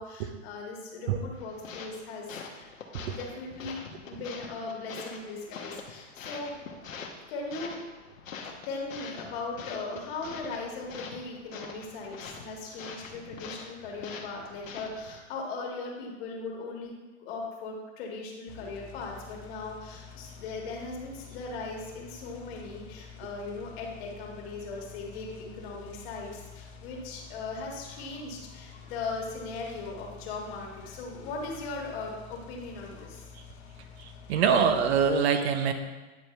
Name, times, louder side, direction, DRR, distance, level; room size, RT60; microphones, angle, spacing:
voice 1, 0.0-2.7 3.0-3.8 4.0-6.5 7.3-7.7 8.6-33.2, left 3 dB, 50° left, -1 dB, 1.9 m, -38 dB
sound 1, 1.3-15.2, left 5 dB, 85° left, 1.1 m, -44 dB
sound 2, 18.5-35.1, left 6 dB, 30° left, 0.8 m, -48 dB
voice 2, 34.0-35.7, right 6 dB, 55° right, 7 dB, 0.8 m, -25 dB
9.3 x 4.4 x 3.3 m, 1.2 s
hypercardioid pair, 120°, 38 cm